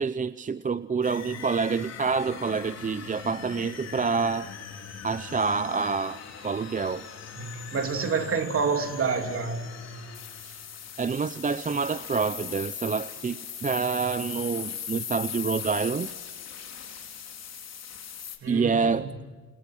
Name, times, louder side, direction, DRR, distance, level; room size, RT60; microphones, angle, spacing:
voice 1, 0.0-4.5 5.0-7.1 10.4-10.6 11.0-16.1 18.5-19.1, right 5 dB, 25° right, 0.7 m, -27 dB
sound 1, 1.0-18.4, left 8 dB, 60° left, 4.7 m, -40 dB
voice 2, 7.4-9.9 18.4-19.1, right 5 dB, 45° right, 3.2 m, -28 dB
29.5 x 28.0 x 6.3 m
cardioid pair, 90°, 30 cm